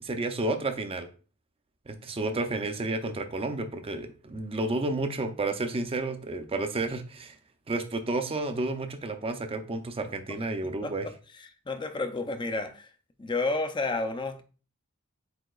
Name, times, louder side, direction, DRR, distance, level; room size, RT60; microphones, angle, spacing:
voice 1, 0.0-1.1 1.9-7.4 7.7-11.1, right 2 dB, 25° right, 0.5 m, -31 dB
voice 2, 10.6-10.9 11.7-12.9 13.2-14.4, left 3 dB, 20° left, 0.5 m, -31 dB
7.7 x 2.8 x 2.3 m
head